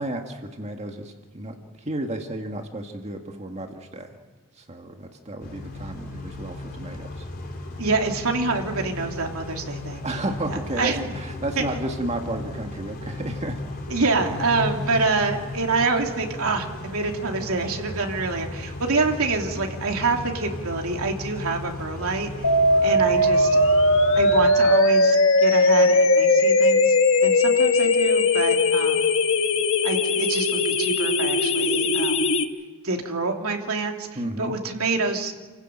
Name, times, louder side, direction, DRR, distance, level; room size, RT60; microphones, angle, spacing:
voice 1, 0.0-4.2 4.6-7.3 10.0-13.6 34.2-34.6, right 1 dB, 30° right, 4 dB, 1.8 m, -32 dB
Car / Idling / Accelerating revving vroom, 5.4-24.5, left 2 dB, 45° left, 4.2 m, -35 dB
voice 2, 7.8-10.0 10.8-11.1 11.6-11.7 13.9-23.6 24.1-26.9 27.2-29.1 29.8-32.3 32.8-35.3, right 3 dB, 75° right, 2 dB, 3.0 m, -26 dB
sound 1, 22.4-32.4, left 2 dB, 60° left, 1.7 m, -19 dB
29.5 x 15.5 x 9.1 m, 1.4 s
head